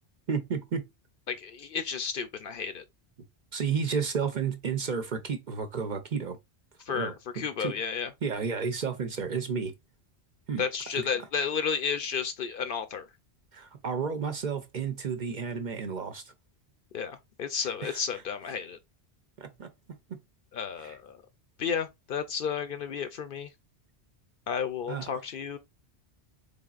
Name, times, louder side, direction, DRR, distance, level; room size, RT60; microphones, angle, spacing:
voice 1, 0.3-0.9 3.5-6.4 6.9-7.8 8.2-9.7 10.5-10.6 10.9-11.2 13.5-16.2 17.8-18.2 19.4-19.7 20.8-21.0 24.9-25.1, right 6 dB, 50° right, 0.7 m, -32 dB
voice 2, 1.3-2.8 6.9-8.1 10.6-13.0 16.9-18.8 20.5-21.2 21.6-23.5 24.5-25.6, left 6 dB, 60° left, 0.7 m, -32 dB
3.9 x 3.4 x 2.3 m
omnidirectional pair, 1.1 m